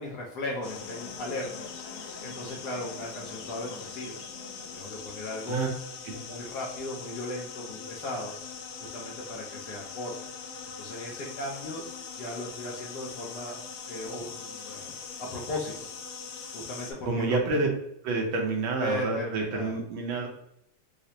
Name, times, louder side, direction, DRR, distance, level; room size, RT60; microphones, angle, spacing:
voice 1, 0.0-1.7 2.2-4.2 4.7-5.7 6.1-8.3 8.9-10.1 10.8-11.8 12.2-13.6 13.9-15.7 16.5-17.4 18.8-19.7, left 1 dB, 65° left, -2 dB, 1.1 m, -36 dB
sound 1, 0.6-16.9, left 5 dB, 90° left, 1.5 m, -41 dB
voice 2, 17.1-17.7 18.0-20.3, right 3 dB, 75° right, 1 dB, 1.4 m, -28 dB
4.9 x 2.0 x 2.7 m, 0.75 s
omnidirectional pair, 2.3 m